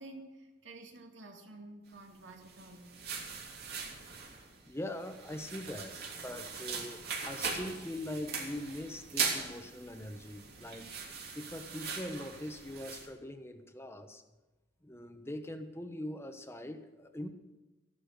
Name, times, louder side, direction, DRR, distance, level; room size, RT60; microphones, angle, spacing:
voice 1, 0.0-2.9, right 2 dB, 85° right, 3 dB, 2.3 m, -50 dB
sound 1, 2.3-13.1, right 5 dB, 60° right, 3.2 m, -40 dB
voice 2, 4.7-10.9 11.3-14.2 14.8-17.3, left 1 dB, 15° left, 7 dB, 1.1 m, -42 dB
14.5 x 12.0 x 6.6 m, 1.1 s
head